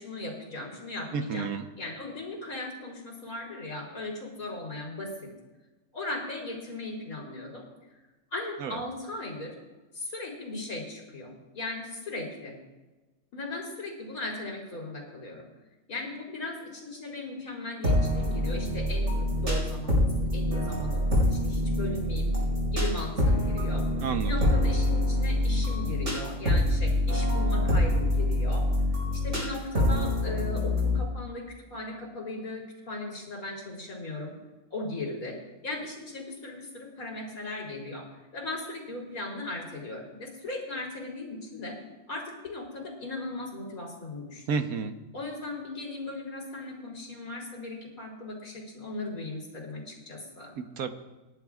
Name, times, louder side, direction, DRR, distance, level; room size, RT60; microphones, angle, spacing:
voice 1, 0.0-5.3 5.9-7.6 8.3-9.5 9.9-12.5 13.3-15.5 15.9-22.3 22.7-23.8 24.2-28.7 29.1-34.4 34.7-35.4 35.6-38.1 38.3-41.8 42.1-44.4 45.1-50.6, left 2 dB, 80° left, -1 dB, 3.8 m, -37 dB
voice 2, 1.1-1.7 8.6-8.8 24.0-24.5 44.5-45.0 50.6-50.9, right 5 dB, 85° right, 8 dB, 1.4 m, -31 dB
sound 1, 17.8-31.0, left 1 dB, 65° right, 5.4 m, -25 dB
27.5 x 11.5 x 2.4 m, 1.2 s
omnidirectional pair, 1.5 m